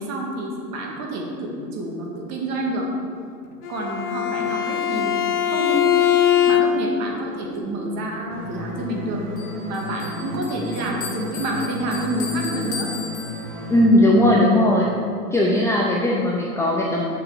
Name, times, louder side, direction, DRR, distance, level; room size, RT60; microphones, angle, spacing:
voice 1, 0.0-2.9 3.7-5.2 5.4-6.1 6.5-9.2 9.6-12.9, right 1 dB, 35° right, 0 dB, 1.9 m, -28 dB
Bowed string instrument, 3.6-7.0, left 10 dB, 70° left, 0.9 m, -21 dB
sound 1, 8.3-13.9, left 2 dB, 65° right, 1.9 m, -34 dB
Bell, 9.4-13.9, left 4 dB, 30° left, 2.0 m, -36 dB
voice 2, 13.7-14.9 15.3-17.0, left 1 dB, 5° left, -3 dB, 0.5 m, -18 dB
6.7 x 5.7 x 6.8 m, 2.4 s
figure-of-eight pair, 100°, 47 cm